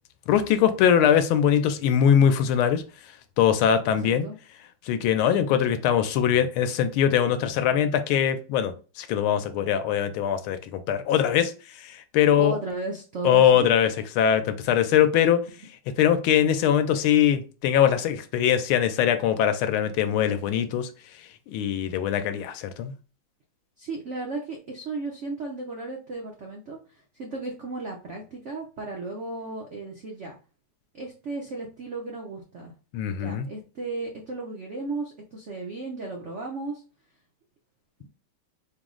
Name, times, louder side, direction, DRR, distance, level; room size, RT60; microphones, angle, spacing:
voice 1, 0.3-2.8 3.4-4.3 4.8-12.6 13.2-15.4 16.0-20.9 21.5-22.9 32.9-33.5, left 9 dB, 85° left, 9 dB, 1.4 m, -22 dB
voice 2, 4.0-4.3 12.4-13.7 23.8-30.4 30.9-32.7 33.2-36.8, right 3 dB, 90° right, 0 dB, 0.6 m, -35 dB
4.7 x 2.0 x 3.7 m, 0.35 s
omnidirectional pair, 2.3 m